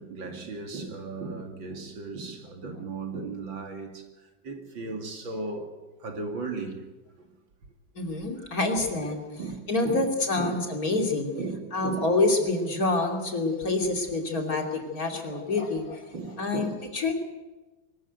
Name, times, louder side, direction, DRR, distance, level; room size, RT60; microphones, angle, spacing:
voice 1, 0.0-4.0 4.4-5.7 6.0-6.8 8.4-8.5 8.8-8.9 9.4-10.1 10.4-10.6 10.9-11.1 11.4-12.1 16.1-16.8, right 3 dB, 75° right, 3.2 m, -36 dB
voice 2, 7.9-9.2 9.7-11.3 11.7-16.1 16.4-17.1, left 2 dB, 45° left, 3.3 m, -27 dB
23.5 x 14.0 x 9.2 m
omnidirectional pair, 2.1 m